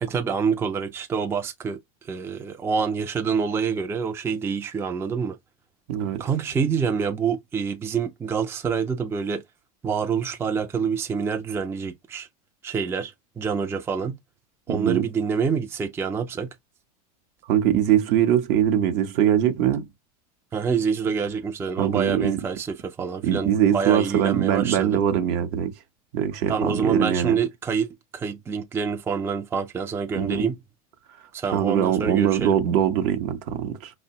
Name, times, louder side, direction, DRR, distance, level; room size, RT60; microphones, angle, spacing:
voice 1, 0.0-5.4 6.2-9.4 9.8-12.3 12.6-14.2 14.7-16.5 20.5-25.0 26.5-30.6 31.3-32.6, right 6 dB, 15° right, 0.4 m, -26 dB
voice 2, 5.9-6.2 14.7-15.1 17.5-19.9 21.8-22.4 23.2-25.7 26.1-27.4 30.1-30.5 31.5-33.9, right 10 dB, 55° right, 0.7 m, -22 dB
5.1 x 2.1 x 2.7 m
supercardioid pair, 110°, 19 cm